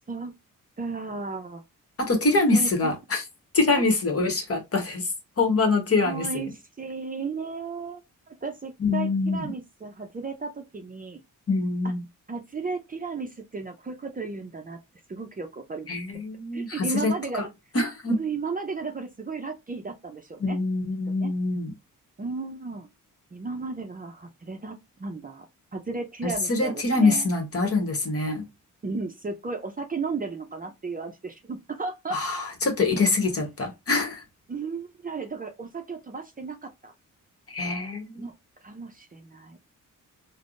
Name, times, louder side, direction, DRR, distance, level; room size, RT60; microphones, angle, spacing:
voice 1, 0.8-1.6 2.5-2.9 3.7-3.9 6.0-8.0 8.3-11.2 12.3-14.8 15.1-15.9 16.5-17.5 18.2-20.6 21.1-21.3 22.2-22.9 23.3-25.4 25.7-27.3 28.8-32.2 34.5-36.9 38.2-38.3 38.6-39.6, right 4 dB, 25° right, 0.5 m, -34 dB
voice 2, 2.0-3.2 3.5-5.1 5.4-6.3 8.8-9.5 11.5-12.0 15.9-17.5 17.7-18.2 20.4-21.7 26.2-28.5 32.1-34.2 37.5-38.3, left 3 dB, 45° left, 1.1 m, -24 dB
3.4 x 2.1 x 2.5 m
cardioid pair, 80°, 33 cm